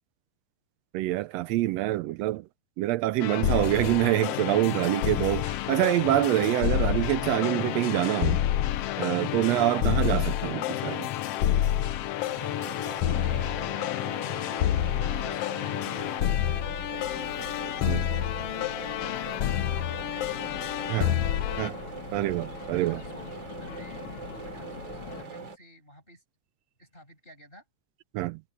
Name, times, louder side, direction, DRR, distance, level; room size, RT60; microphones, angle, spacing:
voice 1, 0.9-2.4 2.8-8.4 9.0-11.1 17.9-18.0 20.9-21.1 21.6-21.7 22.1-23.0 28.1-28.4, right 16 dB, 80° right, 1.6 m, -26 dB
voice 2, 1.9-2.2 13.0-14.4 14.7-21.6 22.5-24.0 24.4-26.2 26.8-27.6, equal, 15° left, 6.7 m, -52 dB
sound 1, 3.2-21.7, left 12 dB, 70° left, 1.6 m, -29 dB
sound 2, 12.2-25.6, right 5 dB, 40° right, 3.0 m, -42 dB
sound 3, 16.9-25.2, left 7 dB, 55° left, 2.0 m, -43 dB
omnidirectional pair, 3.4 m